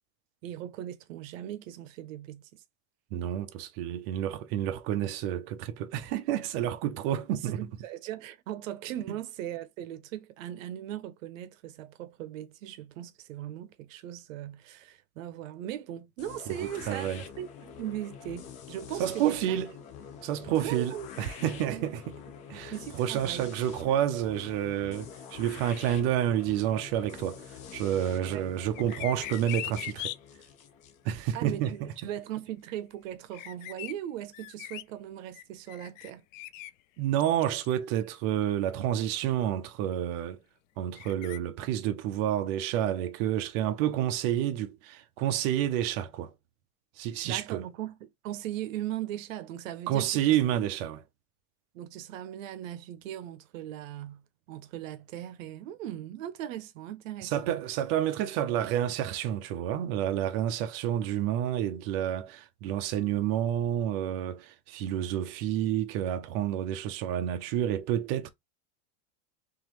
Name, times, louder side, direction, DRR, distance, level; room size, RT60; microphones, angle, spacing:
voice 1, 0.4-2.6 7.3-19.6 20.6-21.3 21.7-22.0 22.5-23.5 28.2-28.5 31.3-36.2 47.2-50.4 51.7-57.6, right 12 dB, 85° right, 0.8 m, -39 dB
voice 2, 3.1-7.6 16.5-17.2 19.0-19.7 20.2-22.0 22.5-30.1 31.0-31.9 37.0-40.4 40.8-46.3 47.0-47.6 49.9-51.0 57.2-68.3, right 11 dB, 50° right, 0.7 m, -29 dB
sound 1, 16.2-32.0, left 7 dB, 20° left, 0.3 m, -46 dB
sound 2, 28.7-30.2 33.3-33.9 34.3-34.8 35.3-36.7 37.2-37.7 38.4-38.5 41.0-41.4, left 15 dB, 80° left, 0.5 m, -40 dB
3.8 x 3.0 x 3.0 m
supercardioid pair, 165°, 38 cm